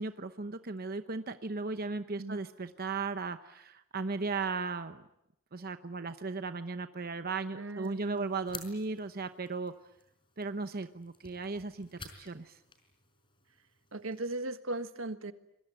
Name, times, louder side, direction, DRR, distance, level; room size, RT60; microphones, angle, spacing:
voice 1, 0.0-5.0 5.5-9.7 10.4-12.6, right 4 dB, 50° right, 9 dB, 0.9 m, -36 dB
voice 2, 7.5-8.3 13.9-15.3, right 2 dB, 80° right, 10 dB, 1.5 m, -38 dB
sound 1, 7.8-14.2, left 5 dB, 25° left, 4.9 m, -53 dB
26.5 x 22.0 x 9.2 m, 0.85 s
head